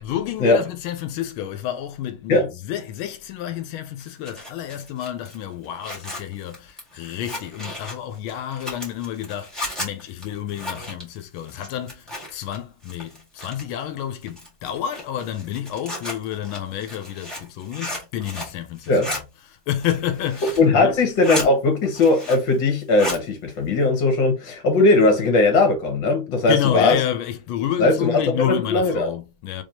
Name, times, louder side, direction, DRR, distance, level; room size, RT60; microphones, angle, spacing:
voice 1, 0.0-21.0 26.5-29.6, left 11 dB, 90° left, 1.5 m, -29 dB
Zipper (clothing), 4.0-12.6 12.8-13.8 14.3-18.6 18.8-19.2 19.7-20.7 21.0-21.5 21.8-22.6 22.8-23.2, left 1 dB, ahead, 1.6 m, -34 dB
voice 2, 20.6-27.0 27.8-29.1, left 2 dB, 65° left, 1.8 m, -19 dB
3.5 x 3.4 x 2.7 m
omnidirectional pair, 2.2 m